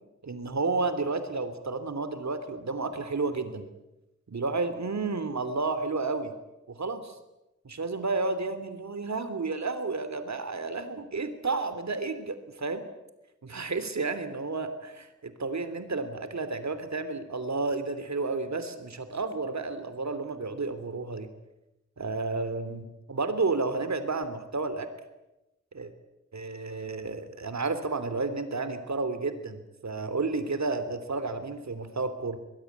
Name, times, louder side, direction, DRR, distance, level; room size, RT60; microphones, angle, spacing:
voice 1, 0.2-3.6 4.3-6.3 6.7-7.2 7.6-12.9 13.4-21.3 22.0-24.9 25.7-25.9 26.3-32.4, right 3 dB, 65° right, 11 dB, 3.2 m, -31 dB
23.5 x 21.0 x 9.5 m, 0.97 s
wide cardioid pair, 100°, 29 cm